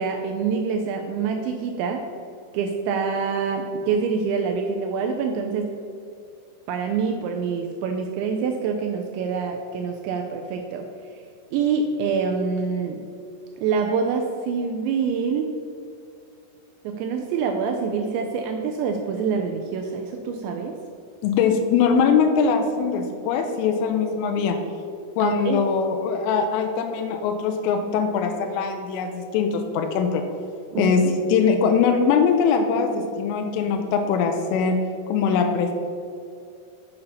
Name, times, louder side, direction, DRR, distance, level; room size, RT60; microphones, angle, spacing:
voice 1, 0.0-2.0 2.5-5.7 6.7-10.9 11.5-13.0 13.6-15.5 16.8-20.7 25.2-25.6 30.7-31.1, right 5 dB, 85° right, 3 dB, 2.7 m, -26 dB
voice 2, 21.2-24.6 25.2-30.2 30.8-34.8 35.1-35.7, left 6 dB, 90° left, 5 dB, 3.3 m, -22 dB
8.1 x 6.7 x 5.6 m, 2.4 s
omnidirectional pair, 5.7 m